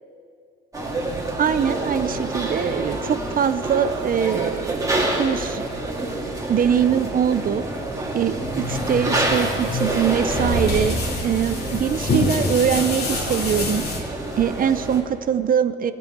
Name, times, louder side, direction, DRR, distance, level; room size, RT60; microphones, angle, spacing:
sound 1, 0.7-15.0, right 1 dB, 15° right, 1.9 m, -27 dB
voice 1, 1.4-4.9 5.2-5.7 6.5-7.6 8.1-10.9 11.2-14.1 14.4-15.9, right 8 dB, 45° right, 12 dB, 0.5 m, -22 dB
sound 2, 7.8-14.0, left 2 dB, 55° left, 2.4 m, -27 dB
14.0 x 5.4 x 7.8 m, 2.3 s
cardioid pair, 90°, 20 cm